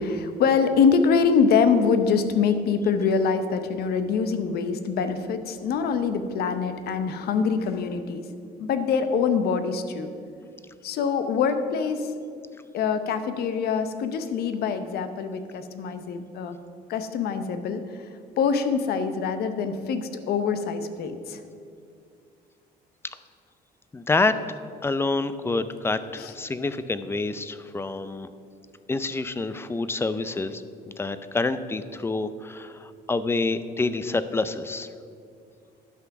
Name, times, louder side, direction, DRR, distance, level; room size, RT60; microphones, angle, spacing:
voice 1, 0.0-8.3 8.6-10.1 10.8-12.1 12.7-16.6 16.9-18.1 18.4-21.4 26.2-26.3, left 5 dB, 70° left, 9 dB, 0.8 m, -24 dB
voice 2, 23.9-24.4 24.8-28.3 28.9-30.6 31.0-34.9, left 3 dB, 15° left, 13 dB, 0.5 m, -27 dB
11.5 x 6.0 x 5.9 m, 2.3 s
cardioid pair, 110°, 17 cm